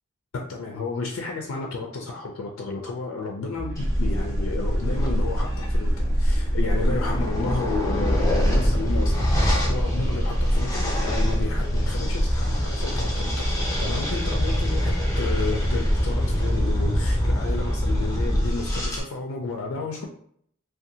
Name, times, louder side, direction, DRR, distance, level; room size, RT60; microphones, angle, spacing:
voice 1, 0.3-20.1, left 3 dB, 85° left, 1 dB, 0.4 m, -32 dB
sound 1, 3.6-17.0, right 1 dB, 55° right, 0.5 m, -34 dB
sound 2, 3.8-19.0, equal, 15° left, 0.5 m, -24 dB
2.6 x 2.2 x 2.7 m, 0.66 s
head